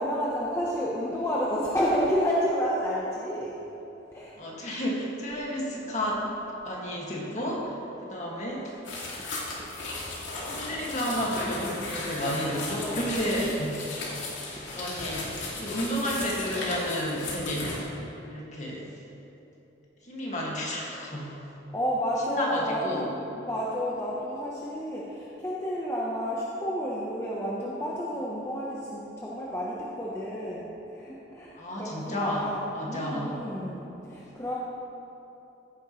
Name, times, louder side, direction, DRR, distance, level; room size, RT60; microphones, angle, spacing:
voice 1, 0.0-4.4 8.6-8.8 9.1-9.2 9.6-9.7 10.0-10.1 10.4-10.8 12.1-13.2 14.5-15.0 15.5-15.7 21.7-34.6, equal, 15° left, -6 dB, 0.9 m, -31 dB
voice 2, 4.4-6.2 6.6-7.8 8.0-8.7 10.4-13.9 14.5-15.3 15.6-17.7 18.3-18.9 20.0-21.3 22.3-23.1 31.6-33.3, equal, 35° left, -4 dB, 1.9 m, -31 dB
sound 1, 8.8-17.8, left 2 dB, 75° left, 2.3 m, -36 dB
15.5 x 9.0 x 3.1 m, 3.0 s
head